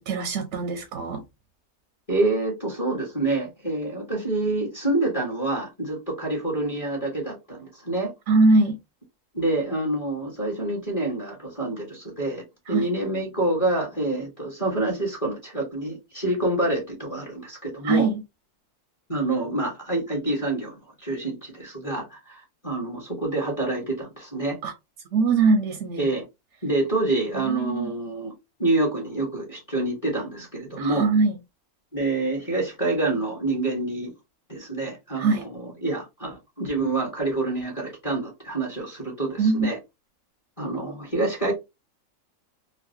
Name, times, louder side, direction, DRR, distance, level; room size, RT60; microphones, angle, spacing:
voice 1, 0.1-1.2 8.3-8.8 12.7-12.9 17.8-18.2 24.6-24.7 25.1-26.1 27.4-27.9 30.8-31.3 35.2-35.4 39.4-39.7, right 3 dB, 65° right, 0.8 m, -22 dB
voice 2, 2.1-8.1 9.3-18.1 19.1-24.6 26.0-26.2 26.6-28.3 28.6-31.1 31.9-34.1 34.5-39.8 40.6-41.5, right 2 dB, 25° left, 1.1 m, -27 dB
3.1 x 2.5 x 2.6 m
omnidirectional pair, 1.6 m